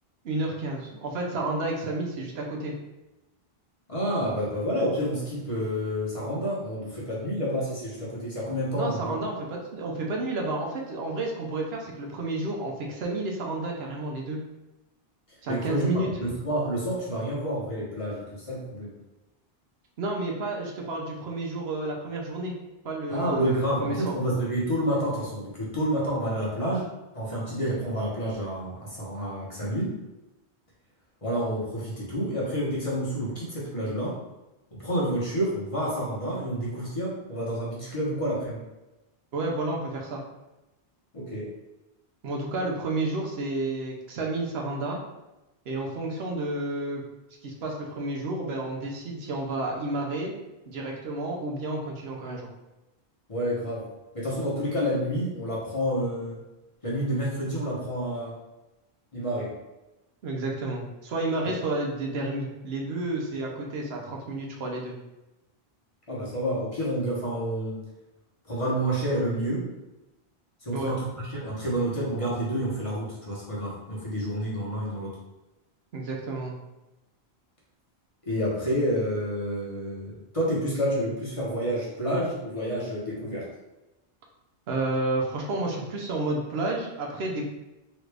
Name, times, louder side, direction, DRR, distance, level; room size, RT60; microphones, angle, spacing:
voice 1, 0.2-2.7 8.7-14.4 15.4-16.1 20.0-22.5 22.8-24.1 39.3-40.2 42.2-45.0 45.7-47.0 47.4-50.3 50.7-52.5 60.2-64.9 70.7-70.9 75.9-76.5 84.7-87.5, right 2 dB, 80° right, 0 dB, 0.9 m, -31 dB
voice 2, 3.9-9.2 15.5-18.9 23.1-26.9 27.1-29.9 31.2-34.2 34.8-38.6 41.1-41.5 53.3-53.9 54.1-56.4 56.8-58.3 59.1-59.5 66.1-67.8 68.5-69.6 70.6-75.1 78.3-83.5, equal, 35° left, -6 dB, 0.9 m, -29 dB
3.0 x 2.4 x 3.3 m, 1.0 s
omnidirectional pair, 1.0 m